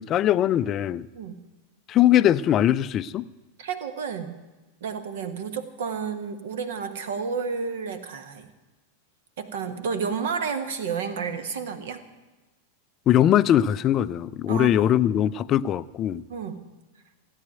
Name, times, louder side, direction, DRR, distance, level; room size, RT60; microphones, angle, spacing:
voice 1, 0.0-1.1 1.9-3.3 13.1-16.2, left 11 dB, 30° left, 17 dB, 0.4 m, -21 dB
voice 2, 3.6-4.4 4.8-8.5 9.4-12.0 14.5-14.8 16.3-16.6, right 6 dB, 55° right, 10 dB, 1.5 m, -31 dB
16.0 x 9.3 x 9.2 m, 1.2 s
figure-of-eight pair, 90°, 0 cm